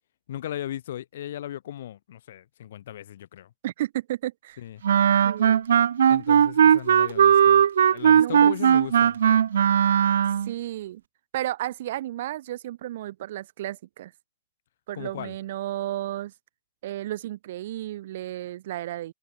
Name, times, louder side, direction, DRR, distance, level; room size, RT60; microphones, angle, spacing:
voice 1, 0.3-3.5 4.6-4.8 6.1-7.6 7.9-9.2 14.9-15.4, left 11 dB, 55° left, 3.9 m, -37 dB
voice 2, 3.6-4.6 5.2-5.7 8.2-8.5 10.5-11.0 11.3-14.1 14.9-16.3 16.8-19.1, right 14 dB, 45° right, 3.6 m, -33 dB
Wind instrument woodwind instrument, 4.8-10.5, right 8 dB, 85° right, 0.4 m, -18 dB
hypercardioid pair, 175°, 0 cm